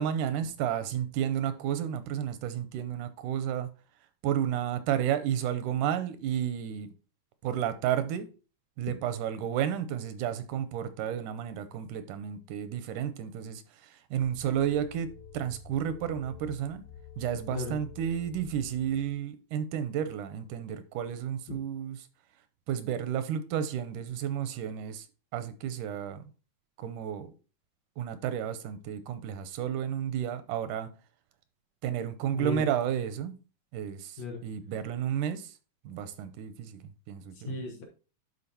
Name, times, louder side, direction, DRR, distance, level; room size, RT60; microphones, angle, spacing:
voice 1, 0.0-3.7 4.2-6.9 7.4-8.3 8.8-16.8 17.2-22.1 22.7-25.1 25.3-26.2 26.8-27.3 28.0-30.9 31.8-33.4 33.7-35.6 35.8-37.5, right 9 dB, 85° right, 2.1 m, -32 dB
sound 1, 14.2-19.2, left 7 dB, 85° left, 3.4 m, -49 dB
voice 2, 32.3-32.7 34.2-34.4 37.3-37.8, left 3 dB, 60° left, 2.3 m, -35 dB
11.5 x 4.4 x 2.8 m
omnidirectional pair, 3.7 m